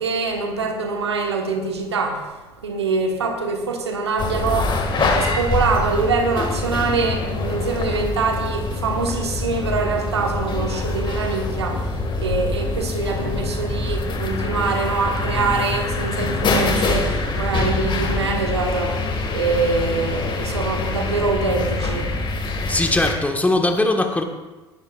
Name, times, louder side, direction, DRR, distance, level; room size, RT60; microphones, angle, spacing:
voice 1, 0.0-2.2 2.6-11.9 12.2-22.1, right 4 dB, 85° right, 4 dB, 1.3 m, -24 dB
sound 1, 4.2-23.1, left 3 dB, 35° left, 2.0 m, -25 dB
voice 2, 22.7-24.2, left 2 dB, 10° left, 4 dB, 1.5 m, -20 dB
19.0 x 11.5 x 2.5 m, 1.2 s
hypercardioid pair, 65°, 14 cm